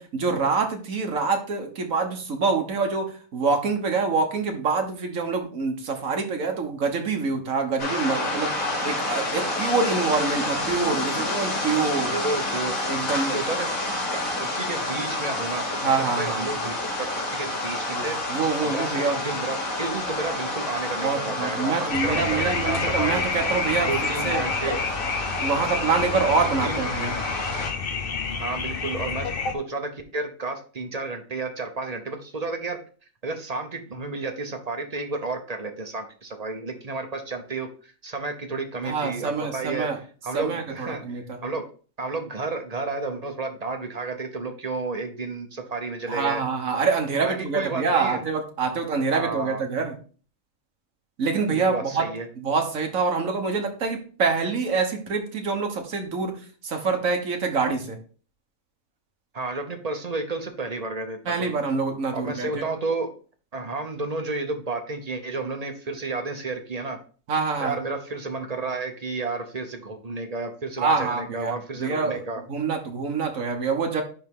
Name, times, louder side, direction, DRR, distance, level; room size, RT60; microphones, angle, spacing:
voice 1, 0.0-8.5 8.8-12.1 12.8-13.4 15.8-16.6 17.9-19.2 21.0-23.9 24.2-24.4 25.4-27.1 38.8-40.0 40.3-41.4 46.1-49.9 51.2-52.0 52.4-56.4 56.6-58.0 61.2-62.7 67.3-67.8 70.8-72.2 72.5-74.0, right 4 dB, 80° right, 4 dB, 1.6 m, -26 dB
sound 1, 7.8-27.7, left 2 dB, 85° left, 2.5 m, -29 dB
voice 2, 12.1-12.8 13.3-13.7 14.1-23.2 23.8-24.8 26.3-26.8 28.4-32.8 33.2-39.9 40.2-41.6 42.0-46.4 47.2-48.2 49.1-49.6 51.5-52.3 59.3-61.5 62.1-63.1 63.5-67.0 67.6-72.4, right 3 dB, 35° right, 6 dB, 0.9 m, -32 dB
sound 2, 21.9-29.5, left 5 dB, 50° left, 1.0 m, -29 dB
10.5 x 3.6 x 3.6 m, 0.40 s
omnidirectional pair, 1.4 m